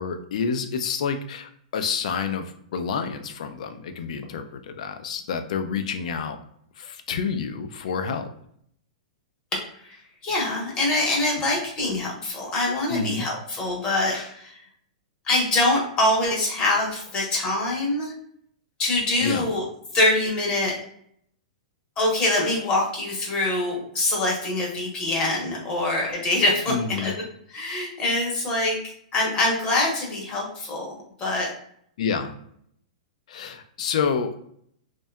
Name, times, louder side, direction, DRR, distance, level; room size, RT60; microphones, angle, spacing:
voice 1, 0.0-6.4 6.8-8.3 12.9-13.3 19.2-19.5 26.7-27.1 32.0-32.3 33.3-34.4, left 6 dB, 65° left, 8 dB, 0.4 m, -28 dB
voice 2, 10.2-14.6 15.2-18.1 18.8-19.6 19.9-20.8 22.0-27.1 27.5-31.5, left 2 dB, 20° left, -3 dB, 0.8 m, -24 dB
2.7 x 2.2 x 2.2 m, 0.67 s
hypercardioid pair, 150°, 4 cm